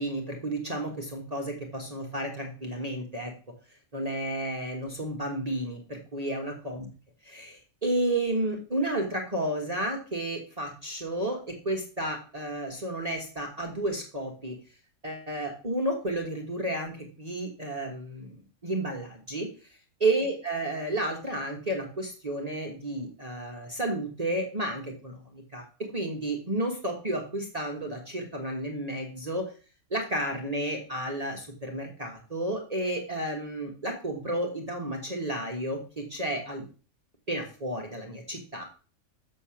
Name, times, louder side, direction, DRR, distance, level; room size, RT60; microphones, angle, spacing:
voice 1, 0.0-3.3 3.9-6.9 7.2-14.5 15.0-18.4 18.6-19.5 20.0-25.6 25.9-29.5 29.9-36.6 37.3-38.6, right 1 dB, 30° right, 0 dB, 1.4 m, -32 dB
7.0 x 6.6 x 5.8 m, 0.38 s
omnidirectional pair, 1.5 m